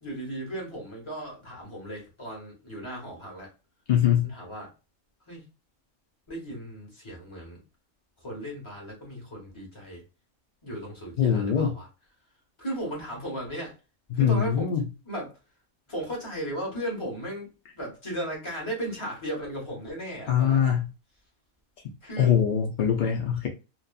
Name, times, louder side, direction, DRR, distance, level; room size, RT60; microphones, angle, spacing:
voice 1, 0.0-3.5 4.2-4.7 5.3-5.4 6.3-7.6 8.2-10.0 10.6-11.9 12.6-13.7 14.1-14.7 15.0-15.4 15.9-20.8 22.0-22.4, right 1 dB, 25° left, 1.0 m, -36 dB
voice 2, 3.9-4.3 11.2-11.7 14.1-14.8 20.3-20.9 22.2-23.5, left 8 dB, 80° left, 0.4 m, -23 dB
2.6 x 2.3 x 2.2 m
omnidirectional pair, 1.5 m